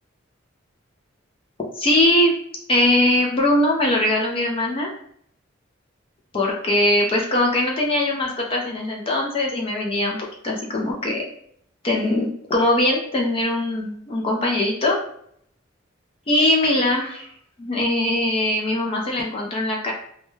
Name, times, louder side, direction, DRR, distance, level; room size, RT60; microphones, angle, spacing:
voice 1, 1.8-2.3 2.7-4.9 6.3-10.2 10.4-11.2 11.8-15.0 16.3-17.3 17.6-19.9, left 1 dB, 25° left, -1 dB, 0.3 m, -21 dB
2.1 x 2.1 x 3.0 m, 0.67 s
head